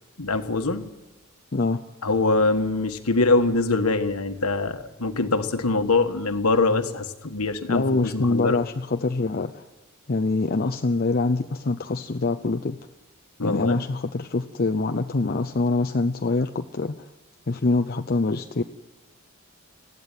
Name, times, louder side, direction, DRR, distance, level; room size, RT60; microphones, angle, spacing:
voice 1, 0.2-0.9 2.0-8.6 13.4-13.8, left 3 dB, 85° left, 7 dB, 1.5 m, -23 dB
voice 2, 7.7-9.6 10.1-12.8 13.4-17.1 17.5-18.6, left 3 dB, 45° left, 5 dB, 0.6 m, -24 dB
19.5 x 15.0 x 9.0 m, 1.1 s
head